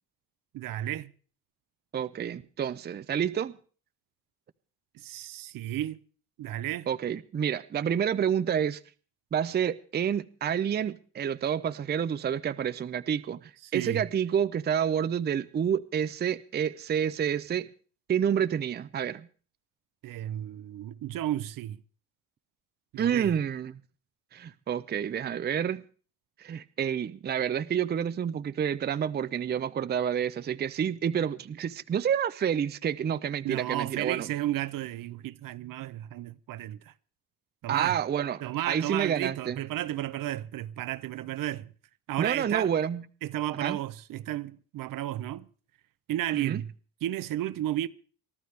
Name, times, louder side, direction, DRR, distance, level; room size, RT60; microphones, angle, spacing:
voice 1, 0.5-1.1 4.9-6.0 6.4-6.9 13.6-14.0 20.0-21.8 22.9-23.3 33.4-36.9 37.6-38.0 38.4-41.7 42.1-42.7 43.2-45.5 46.1-46.7 47.0-47.9, right 13 dB, 60° right, 0.7 m, -33 dB
voice 2, 1.9-3.6 6.9-8.8 9.3-17.7 18.1-19.3 23.0-23.8 24.3-25.8 26.4-34.3 37.7-39.6 42.2-43.0 43.6-43.8 46.3-46.6, right 8 dB, 25° right, 0.6 m, -29 dB
23.5 x 12.5 x 3.3 m
supercardioid pair, 90°, 38 cm